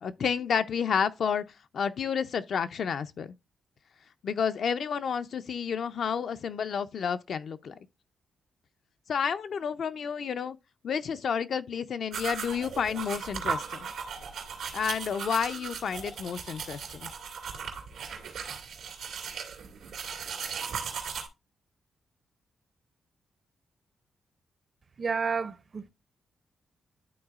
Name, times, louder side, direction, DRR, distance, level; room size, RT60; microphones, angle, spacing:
voice 1, 0.0-1.4 1.7-3.3 4.2-7.7 9.1-10.6 10.8-13.9 14.7-17.1, left 7 dB, 65° left, 0.4 m, -30 dB
sound 1, 12.1-21.3, right 6 dB, 85° right, 2.2 m, -37 dB
voice 2, 25.0-25.9, right 5 dB, 40° right, 0.5 m, -30 dB
11.5 x 3.9 x 2.4 m
cardioid pair, 100°, 0 cm